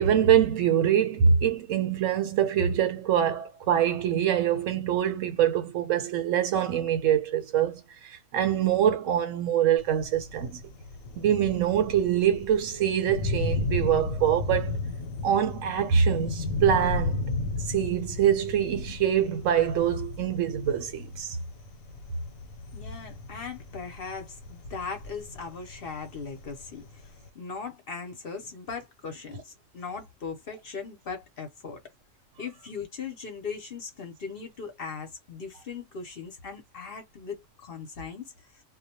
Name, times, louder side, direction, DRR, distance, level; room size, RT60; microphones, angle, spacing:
voice 1, 0.0-10.6 11.2-14.8 15.2-17.2 17.7-21.4, right 9 dB, 75° right, 1.0 m, -24 dB
Thunder, 9.8-27.3, left 3 dB, 85° left, 1.1 m, -35 dB
voice 2, 22.7-31.8 32.4-38.6, left 5 dB, 50° left, 0.8 m, -39 dB
2.2 x 2.1 x 2.8 m
omnidirectional pair, 1.4 m